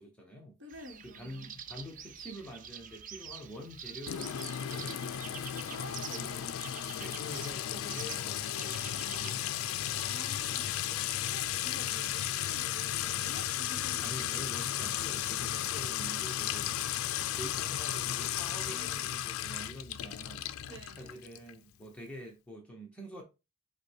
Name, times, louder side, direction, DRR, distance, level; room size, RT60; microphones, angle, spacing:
voice 1, 0.0-0.5 1.0-5.5 6.1-6.4 7.0-9.6 14.0-16.7 17.4-20.5 21.0-23.2, equal, 5° left, 1.0 m, -46 dB
voice 2, 0.6-1.6 5.6-6.4 9.9-14.1 15.4-15.7 17.2-17.4 18.6-19.1 20.7-21.2, right 1 dB, 60° right, 1.1 m, -50 dB
sound 1, 0.7-9.3, right 8 dB, 40° right, 0.4 m, -47 dB
Sink (filling or washing) / Trickle dribble / Fill (with liquid), 4.1-21.5, left 11 dB, 85° left, 0.4 m, -34 dB
5.0 x 2.3 x 4.5 m
head